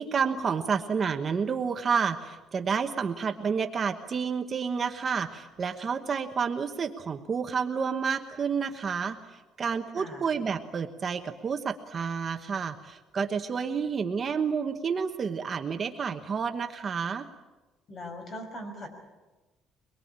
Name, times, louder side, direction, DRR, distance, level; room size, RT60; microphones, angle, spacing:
voice 1, 0.0-9.2 9.6-17.2, right 6 dB, 30° right, 6 dB, 1.1 m, -30 dB
voice 2, 9.9-10.3 17.9-18.9, left 1 dB, 35° left, 4 dB, 5.9 m, -40 dB
24.0 x 22.5 x 8.8 m, 1.1 s
cardioid pair, 165°, 0 cm